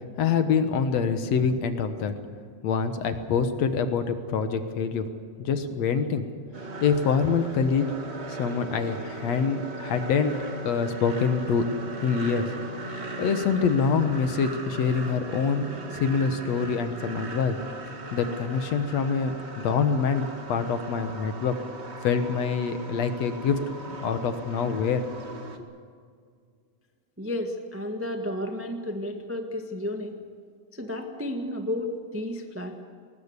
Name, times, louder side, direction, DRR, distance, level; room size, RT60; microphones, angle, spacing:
voice 1, 0.2-2.1 2.6-5.1 5.4-6.2 6.8-7.9 8.3-10.3 10.6-11.7 12.0-12.5 13.2-15.7 15.9-17.6 18.1-21.5 22.0-23.6 24.0-25.0, left 6 dB, 65° left, 8 dB, 2.2 m, -25 dB
sound 1, 6.5-25.6, right 3 dB, 25° right, 1.5 m, -39 dB
voice 2, 27.2-30.1 30.7-32.8, left 1 dB, 10° right, 3 dB, 0.6 m, -32 dB
20.5 x 19.5 x 8.2 m, 2.1 s
omnidirectional pair, 3.6 m